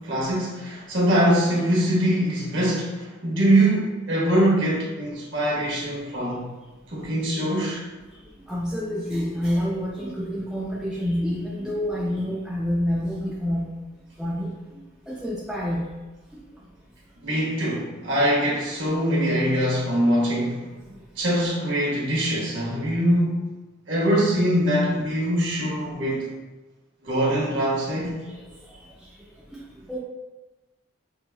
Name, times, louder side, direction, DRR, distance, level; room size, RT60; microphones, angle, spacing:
voice 1, 0.0-6.5 6.9-7.8 17.2-20.7 21.2-23.5 23.9-26.3 27.0-28.2, right 1 dB, 60° right, -5 dB, 1.1 m, -23 dB
voice 2, 8.5-13.7 14.2-15.9 16.3-16.4 18.8-19.0 20.9-21.0 28.3-29.1 29.5-30.0, equal, 5° right, -5 dB, 0.3 m, -28 dB
5.9 x 2.4 x 2.3 m, 1.2 s
head